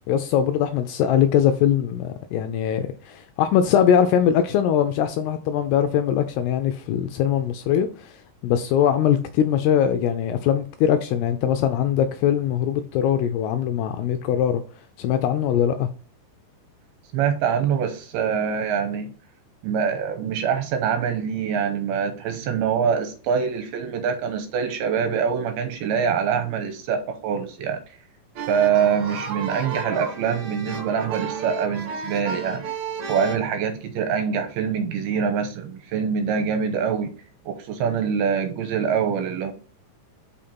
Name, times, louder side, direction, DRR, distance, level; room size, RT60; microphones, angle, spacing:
voice 1, 0.1-8.2 8.4-14.6 15.0-15.9, left 9 dB, 85° left, 2.5 m, -21 dB
voice 2, 17.1-19.1 19.6-27.8 28.5-32.6 33.1-37.1 37.5-39.5, right 7 dB, 75° right, 2.6 m, -24 dB
sound 1, 28.4-33.4, right 5 dB, 60° right, 2.1 m, -32 dB
5.7 x 5.0 x 4.3 m
omnidirectional pair, 4.8 m